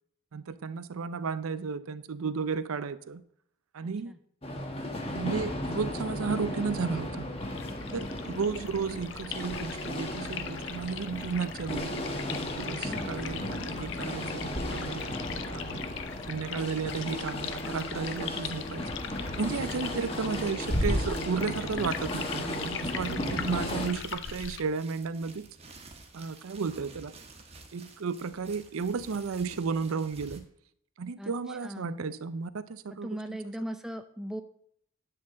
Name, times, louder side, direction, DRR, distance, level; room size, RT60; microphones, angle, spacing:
voice 1, 0.3-3.2 3.7-4.1 5.1-7.3 7.9-12.0 12.6-15.9 16.3-18.9 19.4-25.5 26.1-27.1 27.7-30.5 31.0-33.4, right 5 dB, 85° right, 14 dB, 0.5 m, -33 dB
voice 2, 3.8-4.2 7.8-8.1 12.9-13.3 31.2-32.1 32.9-34.4, right 1 dB, 5° right, 7 dB, 0.5 m, -40 dB
sound 1, 4.4-23.9, left 1 dB, 25° left, 1.1 m, -35 dB
sound 2, 7.4-24.6, left 8 dB, 60° left, 0.6 m, -41 dB
sound 3, 19.6-30.4, right 3 dB, 30° right, 1.1 m, -52 dB
9.9 x 4.0 x 7.4 m, 0.67 s
head